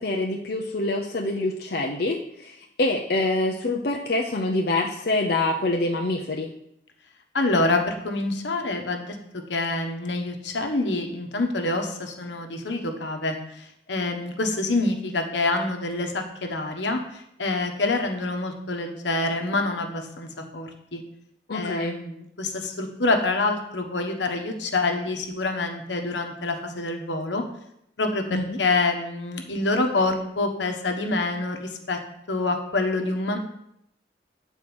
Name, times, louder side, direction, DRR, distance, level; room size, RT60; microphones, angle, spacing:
voice 1, 0.0-6.5 21.5-22.0 28.3-28.6, left 2 dB, 55° left, 0 dB, 0.7 m, -26 dB
voice 2, 7.3-21.0 21.5-27.4 28.0-32.0 32.3-33.4, left 2 dB, 80° left, 4 dB, 1.2 m, -26 dB
8.9 x 4.5 x 6.1 m, 0.76 s
head